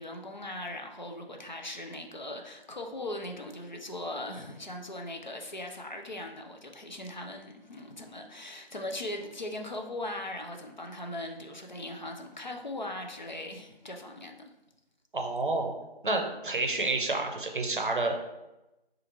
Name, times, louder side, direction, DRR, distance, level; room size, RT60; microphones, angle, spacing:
voice 1, 0.0-14.3, left 1 dB, 50° left, 3 dB, 0.5 m, -39 dB
voice 2, 15.1-15.7 16.0-18.2, right 2 dB, 55° right, 3 dB, 0.6 m, -29 dB
4.8 x 2.5 x 2.9 m, 0.99 s
figure-of-eight pair, 175°, 31 cm